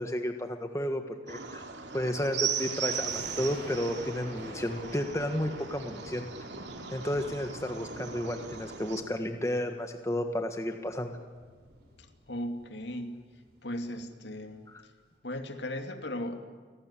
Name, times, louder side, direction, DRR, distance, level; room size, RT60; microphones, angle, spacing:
voice 1, 0.0-1.6 1.9-6.2 6.9-11.2 14.7-14.8, left 1 dB, 15° left, 6 dB, 1.5 m, -32 dB
sound 1, 1.3-9.0, right 7 dB, 75° right, 2.6 m, -38 dB
sound 2, 2.5-9.8 10.1-10.2 10.9-12.7 12.9-13.0 13.3-13.6 14.0-14.1, right 1 dB, 55° right, 5.8 m, -47 dB
voice 2, 12.0-13.2 13.6-14.7 15.2-16.4, left 1 dB, 70° left, 6 dB, 2.6 m, -37 dB
29.5 x 19.0 x 9.9 m, 1.5 s
head